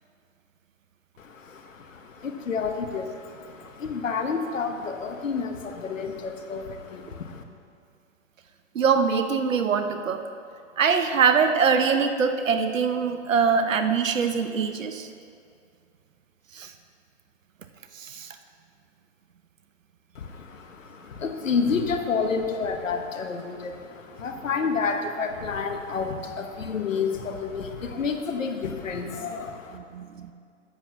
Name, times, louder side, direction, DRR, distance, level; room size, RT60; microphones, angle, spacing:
voice 1, 1.2-7.4 20.1-29.8, left 5 dB, 85° left, 5 dB, 1.2 m, -30 dB
voice 2, 8.7-10.2 10.8-15.1 16.5-16.7 17.9-18.3 29.7-30.3, right 6 dB, 90° right, 8 dB, 0.8 m, -23 dB
7.8 x 7.0 x 6.9 m, 2.3 s
hypercardioid pair, 125°, 38 cm